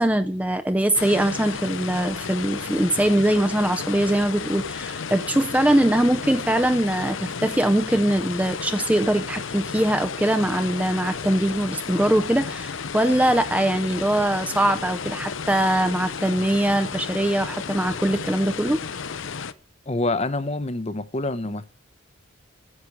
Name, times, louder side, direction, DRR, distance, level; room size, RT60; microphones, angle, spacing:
voice 1, 0.0-18.8, right 1 dB, 5° right, 0.5 m, -22 dB
sound 1, 0.9-19.5, left 6 dB, 70° left, 0.7 m, -33 dB
voice 2, 19.9-21.6, left 2 dB, 30° left, 0.7 m, -26 dB
9.7 x 7.8 x 8.5 m
head